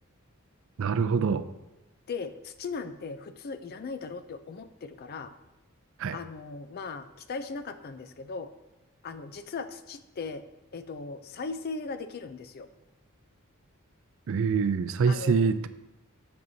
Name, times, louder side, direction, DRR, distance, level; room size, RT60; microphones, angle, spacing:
voice 1, 0.8-1.5 6.0-6.2 14.3-15.7, right 5 dB, 65° right, 12 dB, 0.4 m, -25 dB
voice 2, 2.1-5.3 6.1-8.5 9.0-10.4 10.7-12.7 15.1-15.5, left 4 dB, 45° left, 11 dB, 0.4 m, -38 dB
7.7 x 7.1 x 2.7 m, 0.99 s
head